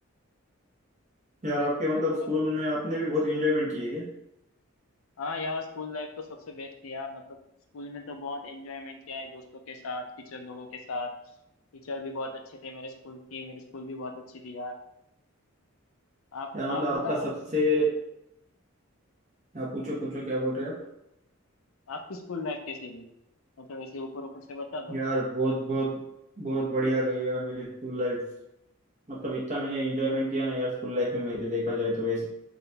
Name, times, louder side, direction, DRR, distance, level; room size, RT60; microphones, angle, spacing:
voice 1, 1.4-4.0 16.5-17.2 17.5-18.0 19.5-20.8 24.9-26.0 26.4-28.2 29.1-32.3, equal, 35° right, -6 dB, 0.8 m, -28 dB
voice 2, 5.2-7.4 7.7-11.1 11.7-14.7 16.3-17.2 21.9-23.1 23.6-24.9, left 3 dB, 75° left, 5 dB, 0.5 m, -37 dB
3.8 x 2.2 x 3.9 m, 0.83 s
head